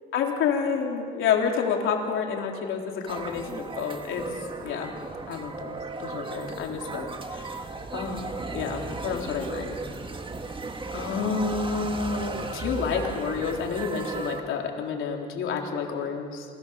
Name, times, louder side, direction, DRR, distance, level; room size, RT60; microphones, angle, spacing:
voice 1, 0.1-4.3 4.6-5.0 5.3-7.1 7.9-9.8 10.9-16.5, left 6 dB, 85° left, 1 dB, 3.8 m, -29 dB
sound 1, 3.1-14.4, right 3 dB, 25° right, 1.9 m, -36 dB
29.0 x 21.0 x 7.2 m, 2.3 s
cardioid pair, 90°, 20 cm